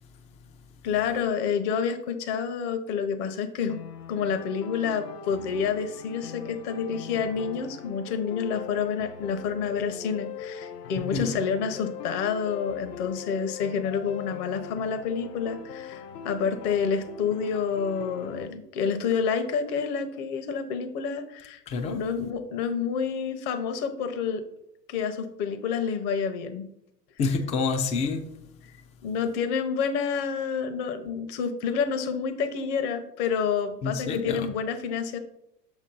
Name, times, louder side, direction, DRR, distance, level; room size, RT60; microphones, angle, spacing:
voice 1, 0.8-3.8 4.1-24.4 24.9-26.6 29.0-35.2, left 6 dB, 45° left, 1.0 m, -28 dB
sound 1, 3.7-18.5, left 8 dB, 75° left, 0.7 m, -41 dB
voice 2, 11.0-11.3 21.7-22.0 27.2-28.4 33.8-34.5, left 4 dB, 15° left, 0.4 m, -28 dB
6.3 x 3.1 x 5.5 m
figure-of-eight pair, 90°, 49 cm